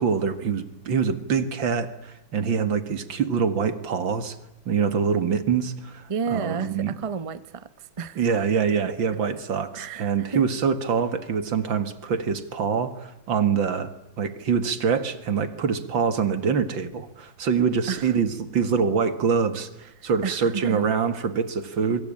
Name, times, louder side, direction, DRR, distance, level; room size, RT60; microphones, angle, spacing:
voice 1, 0.0-4.4 4.7-6.9 8.2-13.9 14.2-22.0, right 6 dB, 80° right, 11 dB, 2.6 m, -25 dB
voice 2, 6.1-8.4 8.8-8.9 9.7-10.4 17.9-18.1 20.0-20.8, right 6 dB, 25° right, 14 dB, 0.8 m, -32 dB
27.0 x 23.5 x 8.8 m, 0.85 s
omnidirectional pair, 2.1 m